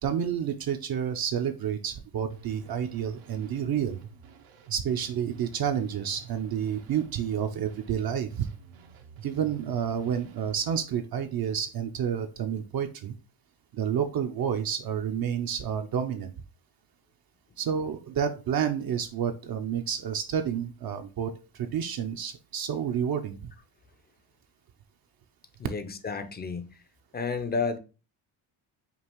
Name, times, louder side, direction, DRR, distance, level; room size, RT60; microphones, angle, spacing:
voice 1, 0.0-4.0 4.7-8.5 9.2-13.2 13.7-16.3 17.6-23.5, right 8 dB, 45° right, 0.6 m, -30 dB
sound 1, 2.2-10.8, right 7 dB, 75° right, 0.8 m, -49 dB
voice 2, 25.6-26.8 27.1-27.8, left 4 dB, 20° left, 0.5 m, -31 dB
5.3 x 2.4 x 3.0 m
cardioid pair, 80°, 50 cm